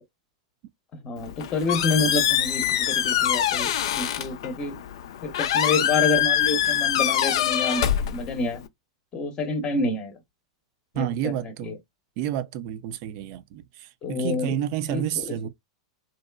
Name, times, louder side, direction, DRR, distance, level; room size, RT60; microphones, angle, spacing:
voice 1, 1.0-4.8 5.2-8.6 9.1-10.2 10.9-11.8 14.0-14.6 14.9-15.4, left 3 dB, 30° left, 0.7 m, -28 dB
Squeak, 1.2-8.7, left 10 dB, 65° left, 0.3 m, -24 dB
voice 2, 11.0-11.7 12.2-15.5, right 10 dB, 50° right, 0.4 m, -30 dB
2.7 x 2.2 x 2.2 m
hypercardioid pair, 95°, 3 cm